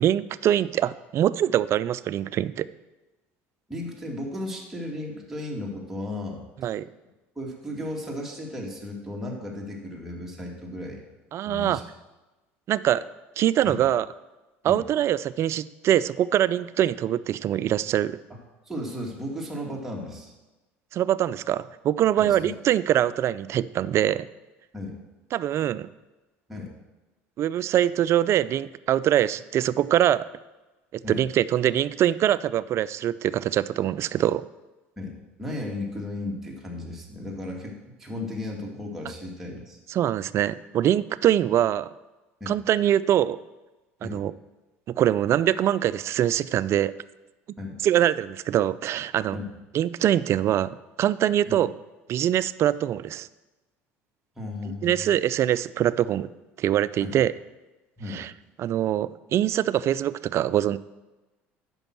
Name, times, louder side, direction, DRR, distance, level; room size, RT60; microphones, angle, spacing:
voice 1, 0.0-2.7 6.6-6.9 11.3-11.8 12.7-13.0 13.4-14.1 14.6-18.2 20.9-24.3 25.3-25.9 27.4-30.2 30.9-34.5 39.9-41.9 42.5-43.4 44.0-44.3 44.9-46.9 47.8-49.4 49.7-51.7 52.1-53.3 54.8-56.3 56.6-57.3 58.1-58.3 58.6-60.8, right 11 dB, 50° right, 17 dB, 0.4 m, -23 dB
voice 2, 3.7-6.7 7.4-11.0 11.4-11.8 13.6-13.8 14.7-14.8 18.3-18.4 18.6-20.3 22.2-22.5 24.7-25.0 26.5-26.7 31.0-31.2 35.0-35.1 35.4-39.8 42.4-42.5 44.0-44.2 47.6-47.8 49.3-49.5 51.5-51.6 54.4-55.1 57.0-57.2 58.0-58.2, left 1 dB, 5° right, -3 dB, 2.3 m, -35 dB
8.8 x 6.2 x 6.0 m, 1.1 s
supercardioid pair, 85°, 6 cm